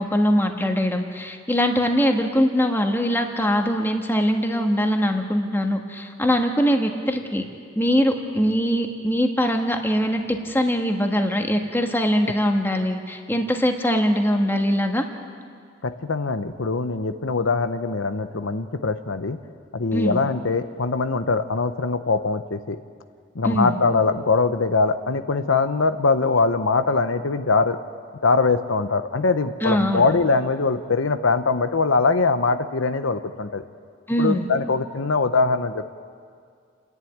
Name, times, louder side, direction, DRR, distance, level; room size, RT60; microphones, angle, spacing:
voice 1, 0.0-7.5 7.7-15.1 19.9-20.2 23.4-23.8 29.6-30.1 34.1-34.5, equal, 10° left, 4 dB, 1.5 m, -22 dB
voice 2, 15.8-19.4 19.7-22.8 23.3-27.8 28.2-33.6 34.2-35.9, left 4 dB, 85° left, 10 dB, 0.8 m, -22 dB
29.0 x 11.0 x 9.4 m, 2.2 s
head